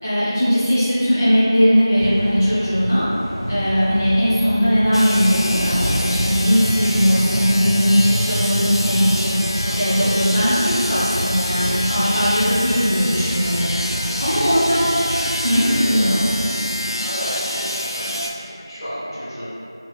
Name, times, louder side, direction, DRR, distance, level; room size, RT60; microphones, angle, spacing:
voice 1, 0.0-3.1 3.5-9.4 9.7-13.7 14.2-14.8 15.4-16.2, equal, 30° left, -15 dB, 0.8 m, -18 dB
sound 1, 2.0-16.5, equal, 30° right, 0.7 m, -28 dB
sound 2, 4.9-18.3, left 1 dB, 90° left, 0.4 m, -27 dB
voice 2, 9.6-10.1 14.0-14.5 15.3-16.7 17.0-19.5, equal, 60° left, -10 dB, 1.1 m, -33 dB
3.0 x 2.2 x 3.2 m, 2.8 s
figure-of-eight pair, 180°, 2 cm